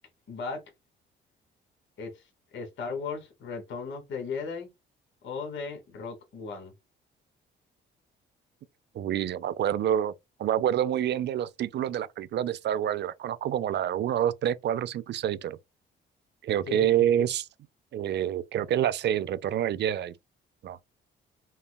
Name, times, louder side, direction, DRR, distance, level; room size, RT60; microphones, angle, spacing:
voice 1, 0.3-0.6 2.0-2.1 2.5-4.7 5.2-6.7 16.7-16.8 17.2-17.3, left 5 dB, 70° left, 1.5 m, -36 dB
voice 2, 8.9-10.1 10.4-15.6 16.4-17.5 17.9-20.1 20.6-20.8, right 10 dB, 60° right, 0.5 m, -27 dB
5.5 x 2.2 x 2.2 m
cardioid pair, 90°, 20 cm